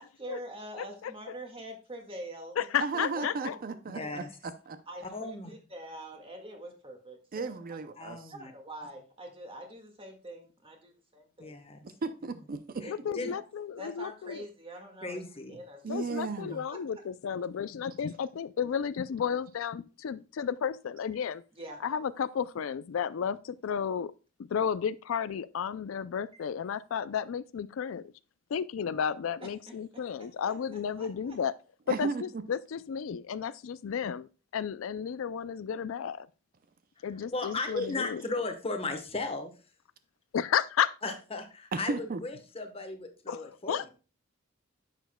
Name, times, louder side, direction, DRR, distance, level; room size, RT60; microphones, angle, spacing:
voice 1, 0.0-2.6 3.1-3.3 4.0-4.1 4.9-7.8 8.3-11.5 12.8-13.4 13.8-15.2 15.5-15.8 16.7-16.8 21.6-21.8 29.9-30.5 31.0-31.4, right 1 dB, 25° right, 1.8 m, -45 dB
voice 2, 0.8-1.1 2.6-3.6 12.9-14.5 15.9-21.4 21.8-24.1 24.5-28.1 28.5-31.5 31.9-36.3 37.0-38.2 40.3-40.9 43.3-43.9, left 7 dB, 75° left, 0.4 m, -33 dB
voice 3, 2.8-4.8 7.3-8.3 11.8-12.9 15.8-16.6 31.9-32.4 37.6-37.7 41.7-42.2, right 4 dB, 45° right, 0.5 m, -35 dB
voice 4, 3.9-4.3 5.0-5.5 8.0-8.5 11.4-11.8 12.8-13.3 15.0-15.6 37.3-39.5 41.0-43.9, left 3 dB, 30° left, 1.1 m, -36 dB
10.5 x 6.9 x 2.2 m
head